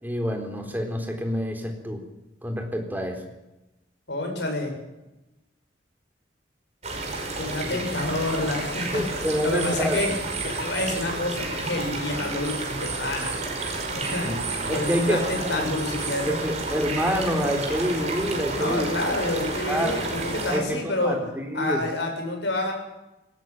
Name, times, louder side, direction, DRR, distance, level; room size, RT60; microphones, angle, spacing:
voice 1, 0.0-2.0 2.4-3.2 7.7-7.8 8.9-10.0 14.2-15.7 16.2-18.9 19.5-20.0 20.5-20.8 21.0-21.9, equal, 10° right, 3 dB, 3.8 m, -27 dB
voice 2, 4.1-4.7 7.3-10.1 10.4-13.4 13.9-14.3 14.7-16.3 18.5-21.2 21.5-22.7, left 2 dB, 70° left, 3 dB, 7.4 m, -28 dB
sound 1, 6.8-20.6, right 3 dB, 35° right, 5.2 m, -31 dB
19.5 x 18.0 x 9.2 m, 0.99 s
head